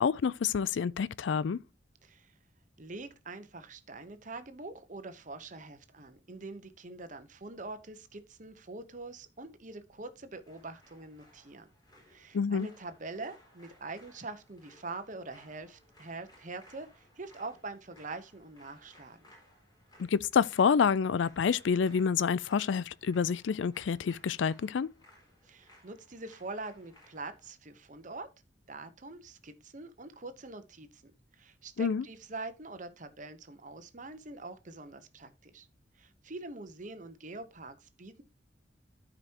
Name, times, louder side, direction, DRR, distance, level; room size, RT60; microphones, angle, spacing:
voice 1, 0.0-1.6 12.3-12.7 20.1-24.9 31.8-32.0, left 6 dB, 85° left, 0.4 m, -28 dB
voice 2, 2.0-2.3 2.8-11.7 12.1-19.3 25.4-28.3 28.7-35.7 36.0-38.2, right 3 dB, 45° right, 1.0 m, -44 dB
sound 1, 10.4-27.5, equal, 20° left, 4.3 m, -61 dB
13.0 x 5.1 x 2.9 m
head